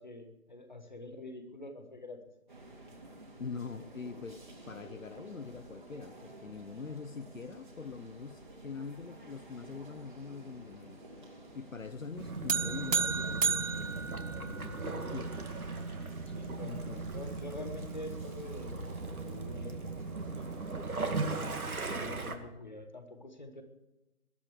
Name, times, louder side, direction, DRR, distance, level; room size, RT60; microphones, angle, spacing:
voice 1, 0.0-2.2 16.3-20.7 21.9-23.6, left 2 dB, 30° left, 7 dB, 1.4 m, -46 dB
sound 1, 2.5-20.8, right 1 dB, 35° right, 2.9 m, -52 dB
voice 2, 3.4-14.0 14.3-15.3 16.5-17.1, left 5 dB, 65° left, 12 dB, 0.9 m, -44 dB
Waves surf / Splash splatter / Trickle dribble, 12.2-22.3, right 3 dB, 85° right, 2.3 m, -38 dB
sound 2, 12.5-15.0, right 5 dB, 65° right, 0.9 m, -32 dB
20.5 x 11.5 x 4.8 m, 0.99 s
figure-of-eight pair, 180°, 42 cm